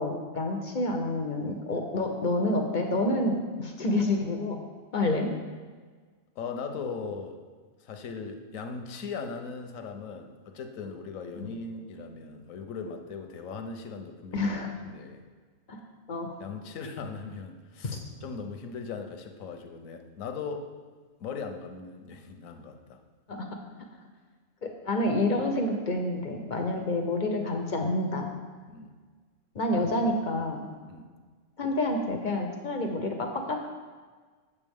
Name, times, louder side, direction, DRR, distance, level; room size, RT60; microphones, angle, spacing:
voice 1, 0.0-4.6 4.9-5.3 11.4-11.5 14.3-14.7 15.7-15.8 16.1-16.3 17.8-18.0 23.3-23.5 24.6-28.3 29.5-30.7 31.6-33.7, left 2 dB, 45° left, 3 dB, 0.6 m, -28 dB
voice 2, 6.4-7.4 7.8-14.5 14.8-15.2 16.4-20.7 21.2-23.0 28.7-28.9 30.9-31.1, left 5 dB, 75° left, 6 dB, 1.1 m, -39 dB
8.4 x 6.8 x 3.5 m, 1.5 s
omnidirectional pair, 1.4 m